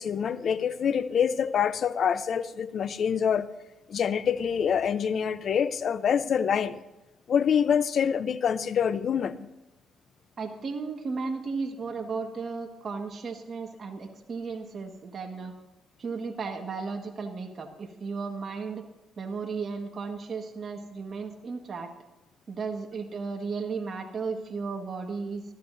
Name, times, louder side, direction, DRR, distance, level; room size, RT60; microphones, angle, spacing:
voice 1, 0.0-3.5 3.9-6.8 7.3-9.5, left 7 dB, 55° left, 0.8 m, -26 dB
voice 2, 10.4-15.5 16.0-18.8 19.2-21.9 22.5-25.4, right 4 dB, 45° right, 1.7 m, -34 dB
20.5 x 14.0 x 2.7 m
cardioid pair, 90°, 0 cm